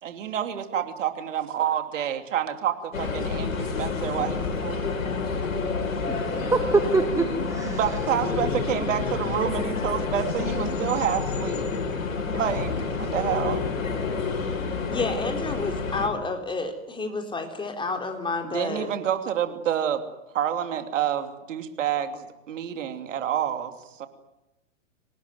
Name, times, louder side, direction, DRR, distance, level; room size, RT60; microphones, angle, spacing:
voice 1, 0.0-4.9 7.6-11.6 12.3-12.7 13.0-13.6 18.4-20.0 20.3-23.7 24.0-24.1, right 10 dB, 65° right, 7 dB, 2.9 m, -28 dB
sound 1, 2.9-16.1, left 4 dB, 75° left, 6.1 m, -28 dB
voice 2, 6.5-7.8, right 3 dB, 10° right, 7 dB, 1.6 m, -23 dB
voice 3, 14.9-19.0, left 3 dB, 10° left, 4 dB, 4.0 m, -30 dB
26.0 x 19.0 x 9.4 m, 0.95 s
hypercardioid pair, 110°, 40 cm